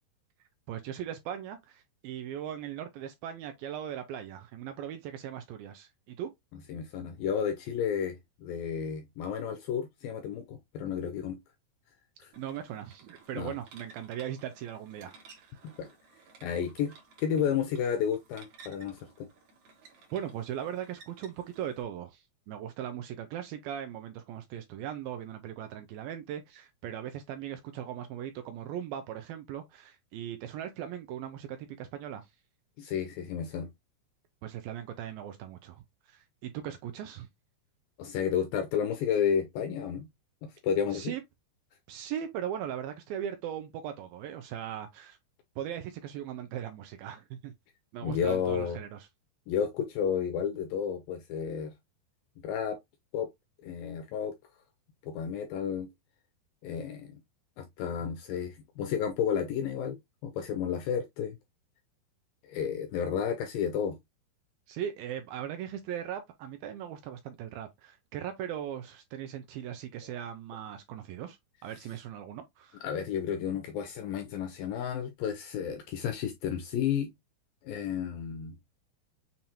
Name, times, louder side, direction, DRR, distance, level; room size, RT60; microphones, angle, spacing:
voice 1, 0.7-6.3 12.4-15.6 20.1-32.3 34.4-37.3 40.9-41.2 41.9-45.2 45.6-47.5 47.9-49.1 64.7-72.8, right 10 dB, 85° right, 2.1 m, -39 dB
voice 2, 6.7-11.4 12.2-12.3 13.3-13.5 15.8-15.9 16.4-16.9 17.2-19.3 32.8-33.7 38.0-40.1 40.4-41.1 48.0-48.8 49.5-51.7 52.4-52.8 53.1-53.3 53.6-54.3 55.0-55.9 56.6-57.2 57.6-61.4 62.4-64.0 72.8-77.1 77.6-78.6, left 8 dB, 90° left, 2.0 m, -32 dB
sound 1, 12.3-21.8, right 4 dB, 60° right, 2.2 m, -56 dB
7.1 x 2.6 x 2.8 m
omnidirectional pair, 4.6 m